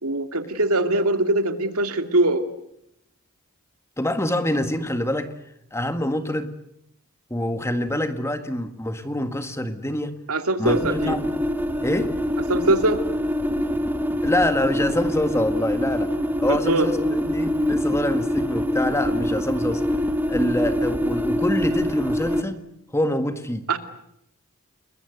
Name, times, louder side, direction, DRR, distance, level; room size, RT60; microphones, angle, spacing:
voice 1, 0.0-2.4 10.3-11.2 12.5-13.0 16.5-16.9 23.7-23.8, right 2 dB, 80° right, 7 dB, 2.6 m, -22 dB
voice 2, 4.0-5.3 5.7-6.5 7.3-10.1 10.6-11.3 11.8-12.1 14.2-16.1 16.4-19.8 20.3-22.6 22.9-23.7, left 1 dB, 10° left, 8 dB, 1.7 m, -25 dB
sound 1, 10.6-22.4, equal, 10° right, 1.6 m, -24 dB
30.0 x 21.5 x 8.1 m, 0.77 s
head